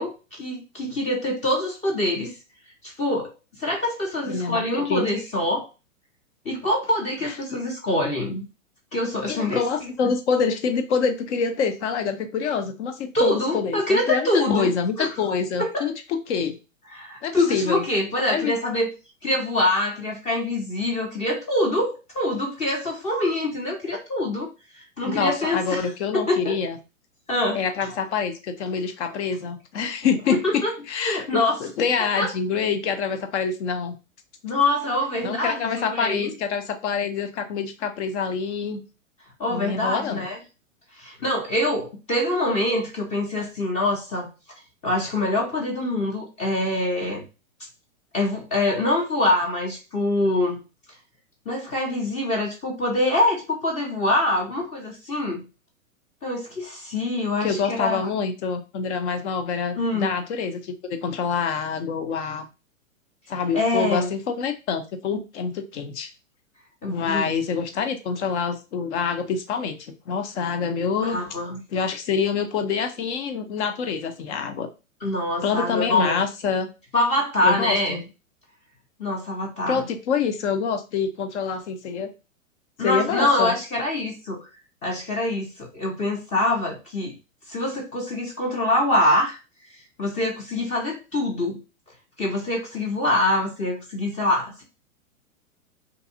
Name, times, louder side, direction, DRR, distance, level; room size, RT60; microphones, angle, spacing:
voice 1, 0.0-2.3 2.8-3.3 3.6-5.7 6.4-8.5 8.9-10.1 13.1-14.7 15.0-15.1 15.6-15.9 16.9-18.9 19.2-24.5 24.7-26.6 27.3-27.9 30.3-30.7 31.0-31.6 32.0-32.3 34.4-36.3 39.4-40.4 41.0-44.3 44.8-47.2 48.1-50.6 51.5-55.5 56.2-58.0 59.8-60.1 63.5-64.1 66.8-67.3 71.0-71.6 75.0-76.2 76.9-78.0 79.0-79.8 82.8-84.5 84.8-87.1 87.5-89.4 89.7-91.6 92.2-94.6, left 1 dB, 15° left, 0 dB, 0.5 m, -25 dB
voice 2, 4.3-5.0 7.2-7.3 9.3-15.9 16.3-16.6 17.2-17.8 18.3-18.5 25.0-26.8 27.5-30.6 30.9-34.0 35.2-38.8 39.5-40.2 57.3-62.5 63.3-66.1 66.8-71.2 71.7-74.7 75.4-76.7 77.4-78.0 79.7-82.1 82.8-83.5, left 6 dB, 55° left, 7 dB, 0.7 m, -26 dB
2.6 x 2.3 x 2.7 m, 0.29 s
hypercardioid pair, 120°, 41 cm